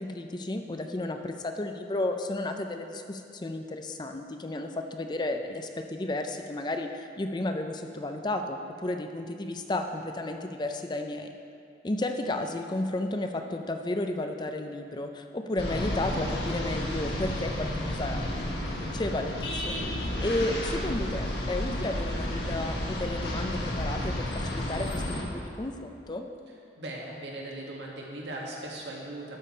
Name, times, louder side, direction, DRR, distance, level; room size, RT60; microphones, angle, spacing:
voice 1, 0.0-11.3 11.8-26.2, left 2 dB, 25° left, 5 dB, 0.4 m, -33 dB
sound 1, 15.6-25.2, left 1 dB, 70° left, 1.5 m, -32 dB
voice 2, 26.5-29.4, right 1 dB, 80° right, -2 dB, 1.8 m, -39 dB
12.0 x 6.8 x 4.4 m, 2.5 s
head